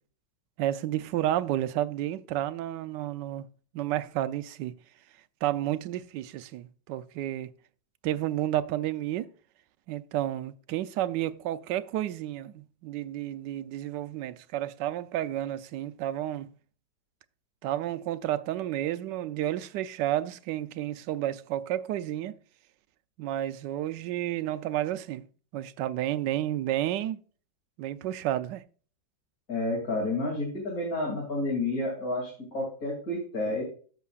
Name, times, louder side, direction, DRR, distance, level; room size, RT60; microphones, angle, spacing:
voice 1, 0.6-3.5 3.7-4.7 5.4-7.5 8.0-9.3 9.9-16.5 17.6-22.4 23.2-25.2 25.5-27.2 27.8-28.6, right 13 dB, 80° right, 1.2 m, -31 dB
voice 2, 29.5-33.6, left 2 dB, 50° left, 3.0 m, -30 dB
14.0 x 6.9 x 2.4 m
omnidirectional pair, 2.0 m